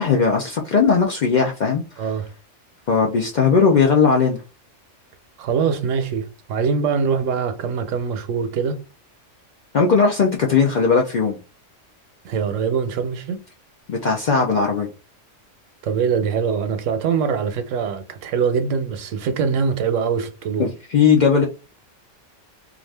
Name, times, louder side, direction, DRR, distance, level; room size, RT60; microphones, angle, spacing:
voice 1, 0.0-2.1 2.9-4.4 9.7-11.4 13.9-14.9 20.6-21.5, left 5 dB, 60° left, 0.5 m, -18 dB
voice 2, 5.4-8.8 12.2-13.4 15.8-20.7, right 6 dB, 85° right, 1.0 m, -23 dB
2.4 x 2.4 x 3.2 m
omnidirectional pair, 1.3 m